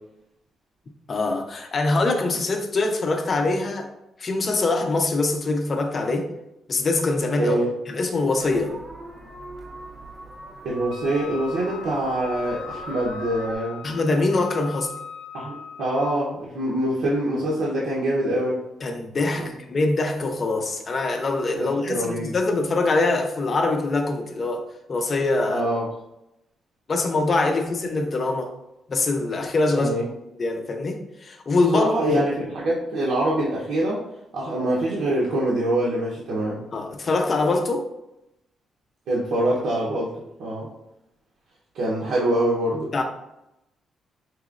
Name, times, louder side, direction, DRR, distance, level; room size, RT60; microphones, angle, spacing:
voice 1, 1.1-3.9 4.2-6.3 6.7-8.8 13.8-14.9 18.8-25.6 26.9-28.5 28.9-29.9 30.4-32.2 36.7-37.9 42.9-43.0, left 3 dB, 35° left, 4 dB, 0.5 m, -24 dB
voice 2, 7.4-7.7 10.6-13.8 15.3-18.6 19.3-19.5 21.6-22.4 25.5-25.9 29.7-30.1 31.7-34.0 34.3-36.6 39.1-40.1 40.4-40.7 41.7-42.9, right 1 dB, 80° right, -5 dB, 0.8 m, -24 dB
sound 1, 8.4-13.6, right 2 dB, 25° right, 0.6 m, -41 dB
Wind instrument woodwind instrument, 10.9-16.3, left 6 dB, 85° left, 0.4 m, -39 dB
4.8 x 3.0 x 2.4 m, 0.87 s
cardioid pair, 140°, 0 cm